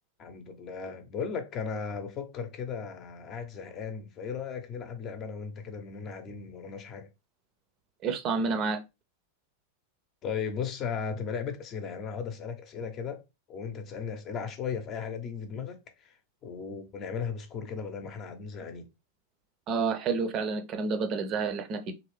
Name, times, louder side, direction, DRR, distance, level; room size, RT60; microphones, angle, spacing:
voice 1, 0.2-7.1 10.2-13.2 13.5-16.2 16.4-18.9, left 6 dB, 30° left, 0.7 m, -36 dB
voice 2, 8.0-8.8 19.7-21.9, right 4 dB, 35° right, 0.6 m, -29 dB
3.1 x 2.7 x 3.1 m
figure-of-eight pair, 90°, 0 cm